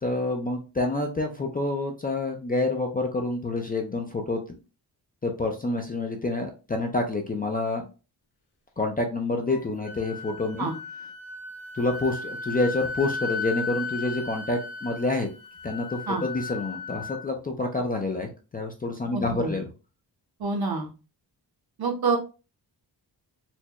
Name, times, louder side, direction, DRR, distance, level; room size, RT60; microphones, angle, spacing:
voice 1, 0.0-4.4 5.2-7.8 8.8-10.7 11.7-15.3 15.6-19.7, left 2 dB, 25° left, 2 dB, 0.4 m, -28 dB
Wind instrument woodwind instrument, 9.5-17.2, left 4 dB, 75° left, 0.8 m, -36 dB
voice 2, 19.1-19.6 20.4-20.9 21.8-22.2, right 4 dB, 65° right, 2 dB, 0.9 m, -27 dB
4.3 x 2.2 x 2.9 m, 0.33 s
wide cardioid pair, 170°, 40 cm